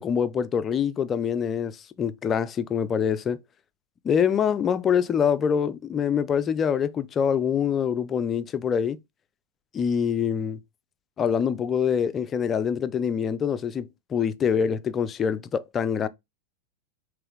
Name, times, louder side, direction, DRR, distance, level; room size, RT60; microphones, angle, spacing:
voice 1, 0.0-3.4 4.0-9.0 9.7-10.6 11.2-16.1, left 7 dB, 25° left, 0.3 m, -25 dB
3.4 x 3.0 x 3.5 m
figure-of-eight pair, 90°, 0 cm